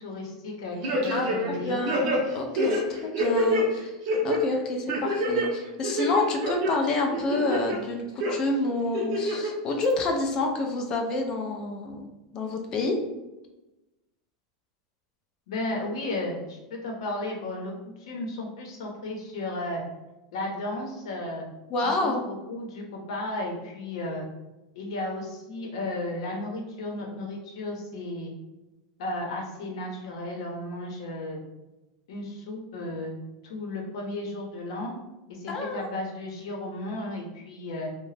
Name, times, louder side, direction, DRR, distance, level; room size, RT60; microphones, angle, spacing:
voice 1, 0.0-1.8 15.5-17.7 18.0-19.8 20.3-21.5 21.8-24.2 24.7-28.3 29.0-31.4 32.1-33.2 33.4-34.9 35.3-37.9, left 2 dB, 70° left, 0 dB, 0.8 m, -34 dB
sound 1, 0.8-1.6 1.9-3.6 4.0-4.4 4.9-5.5 5.8-6.7 7.1-7.8 8.2-8.3 8.9-9.5 9.9-10.0, right 1 dB, 40° right, 0.6 m, -26 dB
voice 2, 1.1-3.9 4.2-12.0 12.3-13.0 21.7-22.2 35.5-35.9, left 2 dB, 25° left, 2 dB, 0.3 m, -28 dB
2.7 x 2.1 x 3.2 m, 1.0 s
supercardioid pair, 175°, 3 cm